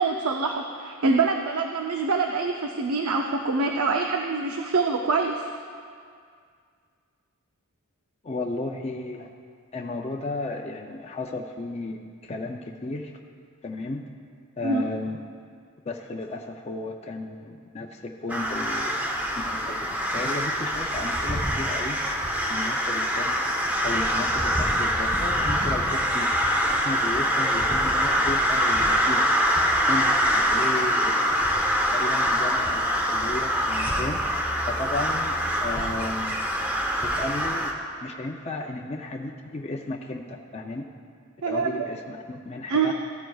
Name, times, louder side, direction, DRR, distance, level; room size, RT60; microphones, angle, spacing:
voice 1, 0.0-5.5 14.6-14.8 41.4-41.9 42.7-42.9, right 4 dB, 80° right, 3 dB, 0.6 m, -25 dB
voice 2, 8.2-9.3 9.7-13.1 13.6-14.0 14.6-15.2 15.9-18.9 19.5-22.0 22.5-23.4 23.8-26.3 26.7-29.2 29.9-31.6 31.9-32.8 33.1-34.2 34.7-35.4 35.6-36.4 37.0-37.7 38.0-40.9 41.5-42.9, left 2 dB, 30° left, 2 dB, 0.5 m, -34 dB
sound 1, 18.3-37.7, equal, 10° right, 0.8 m, -24 dB
15.0 x 12.5 x 2.3 m, 2.2 s
head